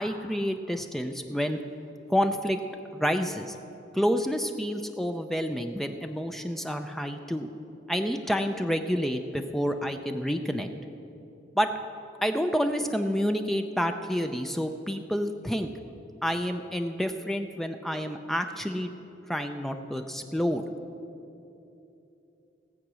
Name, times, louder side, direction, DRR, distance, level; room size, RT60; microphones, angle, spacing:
voice 1, 0.0-1.6 2.1-2.6 2.9-3.6 3.9-7.5 7.9-10.7 11.5-11.7 12.2-15.7 16.2-18.9 19.3-20.6, equal, ahead, 6 dB, 0.5 m, -29 dB
18.0 x 7.4 x 6.2 m, 2.8 s
head